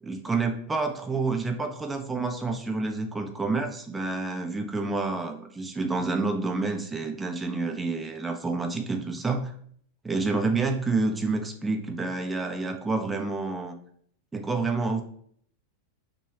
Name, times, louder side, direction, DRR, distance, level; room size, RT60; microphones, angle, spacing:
voice 1, 0.0-9.5 10.0-13.7 14.3-15.0, right 3 dB, 15° right, 4 dB, 0.4 m, -28 dB
3.1 x 2.2 x 2.7 m, 0.62 s
figure-of-eight pair, 90°, 0 cm